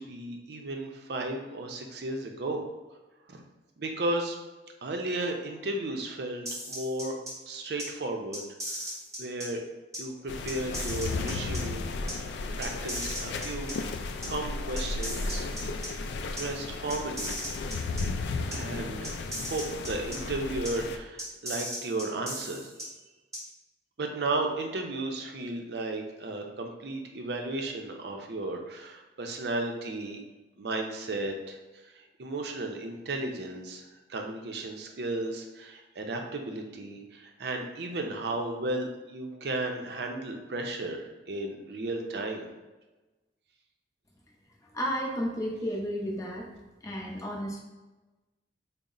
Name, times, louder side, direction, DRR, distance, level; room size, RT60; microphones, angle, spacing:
voice 1, 0.0-2.6 3.3-3.4 3.8-4.4 4.8-7.2 7.5-8.9 9.2-9.6 10.0-11.9 12.6-15.5 16.4-17.4 18.5-19.1 19.4-22.7 24.0-30.2 30.6-42.5, right 2 dB, 65° right, 3 dB, 0.5 m, -34 dB
sound 1, 6.4-7.3 7.8-7.9 8.3-9.5 9.9-10.0 10.5-11.6 12.1-12.2 12.6-13.7 14.2-14.3 14.8-15.9 16.4-16.5 16.9-18.0 18.5-18.6 19.0-20.2 20.6-20.7 21.2-22.8 23.3-23.4, equal, 15° right, 0.8 m, -37 dB
sound 2, 10.3-21.0, left 3 dB, 75° left, 0.3 m, -34 dB
voice 2, 44.7-46.5 46.8-47.6, equal, 20° left, -1 dB, 0.5 m, -32 dB
4.0 x 2.0 x 3.7 m, 1.1 s
head